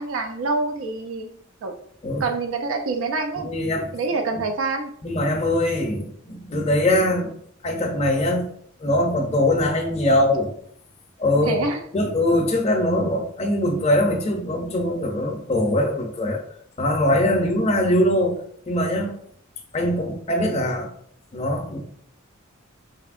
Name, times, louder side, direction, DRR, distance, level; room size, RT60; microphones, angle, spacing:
voice 1, 0.0-1.3 1.6-1.7 2.2-3.5 3.9-4.9 11.5-11.8, right 3 dB, 75° right, 5 dB, 0.4 m, -26 dB
voice 2, 3.4-3.9 4.3-4.4 5.0-7.3 7.6-8.5 8.8-10.5 11.2-11.7 11.9-16.4 16.8-18.4 18.7-19.2 19.7-20.9 21.3-21.8, left 1 dB, 30° left, 2 dB, 0.5 m, -22 dB
3.3 x 2.7 x 2.4 m, 0.63 s
head